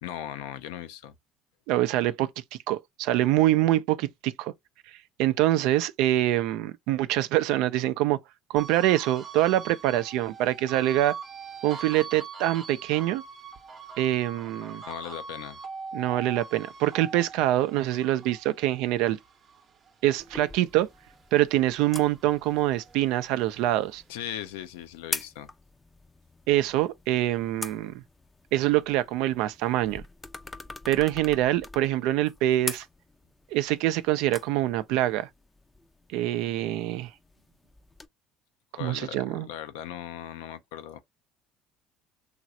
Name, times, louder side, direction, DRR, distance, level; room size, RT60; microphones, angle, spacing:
voice 1, 0.0-1.1 14.8-15.6 24.1-25.5 38.7-41.0, left 11 dB, 80° left, 0.4 m, -38 dB
voice 2, 1.7-2.3 2.7-4.5 5.2-8.2 8.5-11.1 11.6-13.2 14.0-14.8 15.9-19.2 20.0-20.9 21.3-24.0 26.5-28.0 28.5-30.0 30.9-32.8 33.5-35.3 36.1-37.1 38.8-39.5, right 14 dB, 70° right, 0.3 m, -25 dB
sound 1, 8.6-21.2 21.6-23.3, right 5 dB, 45° right, 0.7 m, -42 dB
sound 2, 20.2-38.1, left 2 dB, 20° left, 0.4 m, -44 dB
3.1 x 2.4 x 2.6 m
hypercardioid pair, 70°, 0 cm